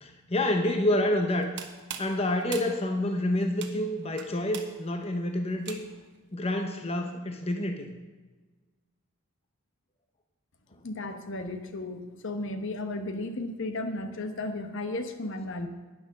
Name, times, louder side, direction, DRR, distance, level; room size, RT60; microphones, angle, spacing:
voice 1, 0.0-1.5 2.0-5.8 6.3-8.0, left 1 dB, 30° left, 5 dB, 0.8 m, -28 dB
sound 1, 1.3-6.2, right 7 dB, 55° right, 1.1 m, -43 dB
voice 2, 10.8-15.7, left 2 dB, 60° left, 8 dB, 1.0 m, -34 dB
10.5 x 9.9 x 6.5 m, 1.3 s
head